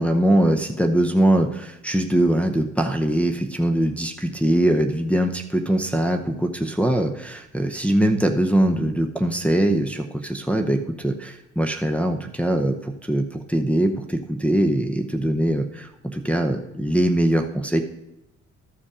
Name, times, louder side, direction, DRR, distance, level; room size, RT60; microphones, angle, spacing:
voice 1, 0.0-17.8, right 1 dB, 5° left, 1 dB, 0.7 m, -22 dB
13.0 x 5.1 x 4.9 m, 0.90 s
cardioid pair, 90°, 30 cm